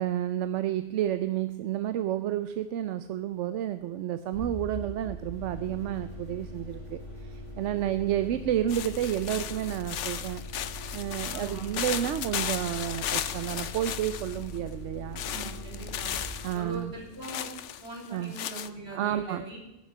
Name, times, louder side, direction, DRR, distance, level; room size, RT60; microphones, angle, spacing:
voice 1, 0.0-10.4 10.9-15.2 16.4-16.9 18.1-18.3 18.9-19.5, right 11 dB, 85° right, 12 dB, 0.9 m, -30 dB
sound 1, 4.3-17.8, equal, 25° left, 2.2 m, -41 dB
sound 2, 8.7-14.6 15.2-16.6 17.2-18.7, left 10 dB, 85° left, 1.0 m, -35 dB
voice 2, 11.3-11.7 15.2-16.1 16.5-17.5 17.8-19.6, right 1 dB, 60° right, -2 dB, 3.9 m, -41 dB
11.5 x 7.3 x 9.3 m, 0.95 s
omnidirectional pair, 1.2 m